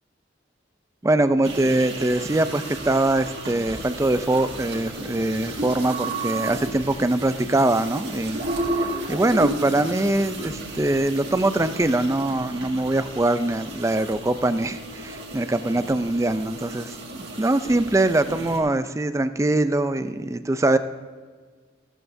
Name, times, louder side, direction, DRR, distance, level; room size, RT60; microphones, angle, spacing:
voice 1, 1.0-8.5 8.7-20.8, right 2 dB, 15° right, 11 dB, 0.4 m, -23 dB
sound 1, 1.4-18.6, right 1 dB, 60° right, 1.9 m, -33 dB
15.5 x 12.5 x 2.6 m, 1.5 s
head